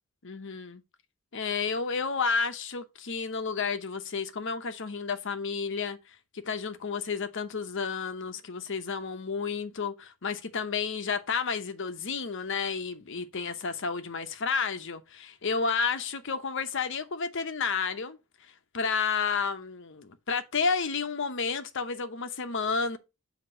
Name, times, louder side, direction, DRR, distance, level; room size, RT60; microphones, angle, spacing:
voice 1, 0.2-0.8 1.3-23.0, left 5 dB, 60° left, 0.8 m, -31 dB
7.8 x 2.9 x 5.4 m
head